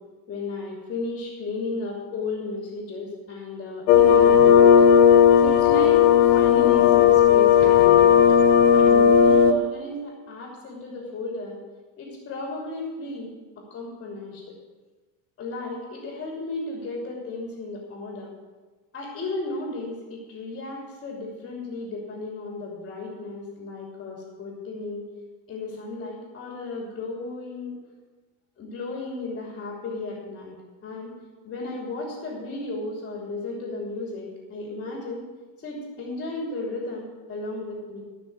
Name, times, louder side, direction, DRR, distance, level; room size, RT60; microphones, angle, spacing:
voice 1, 0.3-4.8 5.4-6.0 6.3-8.1 8.7-11.6 12.0-13.4 13.7-14.5 15.4-18.3 18.9-25.0 25.5-27.7 28.6-30.5 30.8-31.1 31.4-35.2 35.6-38.0, left 2 dB, 25° left, -1 dB, 2.8 m, -34 dB
sound 1, 3.9-9.5, left 8 dB, 70° left, 1.0 m, -15 dB
15.0 x 6.1 x 8.0 m, 1.3 s
cardioid pair, 155°, 41 cm